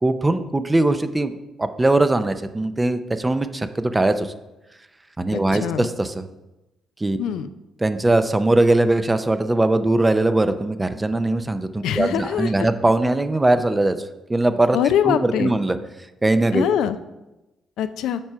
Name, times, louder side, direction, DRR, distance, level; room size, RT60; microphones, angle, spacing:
voice 1, 0.0-4.3 5.2-6.3 7.0-7.2 7.8-14.0 14.3-14.8 15.0-15.8 16.2-16.7, right 2 dB, 15° right, 10 dB, 0.5 m, -20 dB
voice 2, 5.3-5.9 7.2-7.5 11.8-12.7 14.7-15.5 16.5-17.0 17.8-18.2, left 9 dB, 85° left, 12 dB, 0.4 m, -23 dB
7.3 x 4.7 x 5.6 m, 0.99 s
cardioid pair, 90°, 0 cm